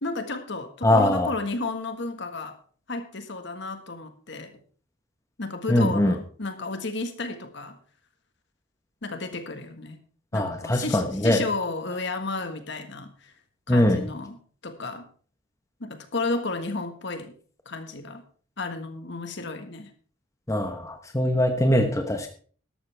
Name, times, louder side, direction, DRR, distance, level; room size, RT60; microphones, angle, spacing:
voice 1, 0.0-2.6 2.9-4.6 5.4-7.8 9.0-10.0 10.3-13.3 13.7-14.4 14.6-15.0 15.8-17.3 17.6-18.2 18.6-19.9, left 3 dB, 55° left, 8 dB, 1.5 m, -32 dB
voice 2, 0.8-1.3 5.7-6.1 10.3-11.4 13.7-14.1 20.5-22.3, left 1 dB, 15° left, 5 dB, 1.0 m, -22 dB
13.0 x 12.0 x 3.4 m, 0.43 s
head